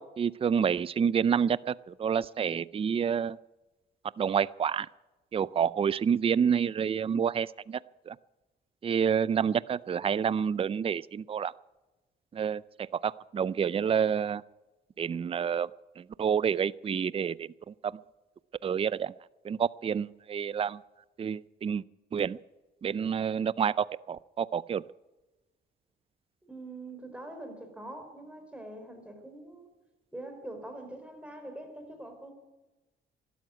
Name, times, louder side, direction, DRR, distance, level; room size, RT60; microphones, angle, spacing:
voice 1, 0.0-3.4 4.2-4.9 5.3-7.8 8.1-8.2 8.8-11.5 12.3-14.4 15.0-15.7 16.0-18.0 18.6-19.1 19.4-20.8 21.2-21.8 22.1-22.4 22.8-24.8, right 7 dB, 30° right, 20 dB, 0.4 m, -28 dB
voice 2, 26.4-29.7 30.1-32.3, right 1 dB, 5° right, 4 dB, 4.6 m, -44 dB
12.5 x 12.5 x 9.4 m, 1.1 s
cardioid pair, 90°, 20 cm